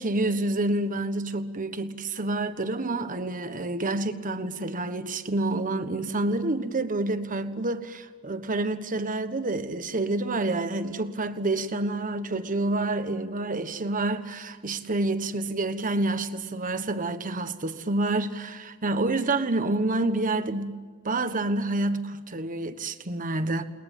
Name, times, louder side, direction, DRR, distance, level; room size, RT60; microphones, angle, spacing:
voice 1, 0.0-20.7 21.0-23.6, right 2 dB, 40° right, 1.3 m, -28 dB
29.5 x 21.0 x 9.1 m
head